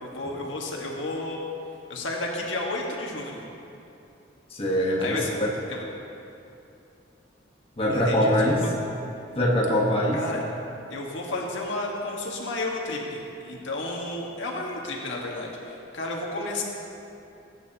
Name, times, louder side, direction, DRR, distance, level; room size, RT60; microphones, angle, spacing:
voice 1, 0.0-1.4 1.9-3.4 5.0-5.3 5.7-5.8 7.9-8.3 8.6-8.7 10.1-10.4 10.9-16.6, left 2 dB, 90° left, -1 dB, 1.7 m, -32 dB
voice 2, 4.5-5.2 7.8-8.6 9.3-10.2, equal, 30° left, -3 dB, 1.3 m, -22 dB
19.0 x 9.0 x 2.9 m, 2.7 s
head